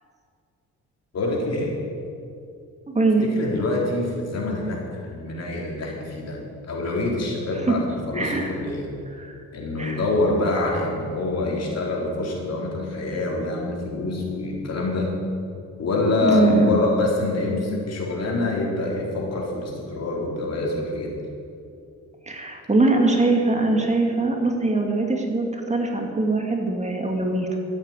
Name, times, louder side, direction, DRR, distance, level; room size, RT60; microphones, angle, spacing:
voice 1, 1.1-1.8 3.3-6.4 6.7-8.9 9.5-15.2 15.8-21.1, left 2 dB, 55° left, -2 dB, 4.4 m, -25 dB
voice 2, 2.9-3.3 7.6-7.8 8.1-8.6 9.1-9.4 9.8-10.0 16.2-16.7 22.3-27.5, right 2 dB, 25° right, 2 dB, 2.3 m, -22 dB
14.5 x 8.7 x 9.3 m, 2.5 s
cardioid pair, 90°, 30 cm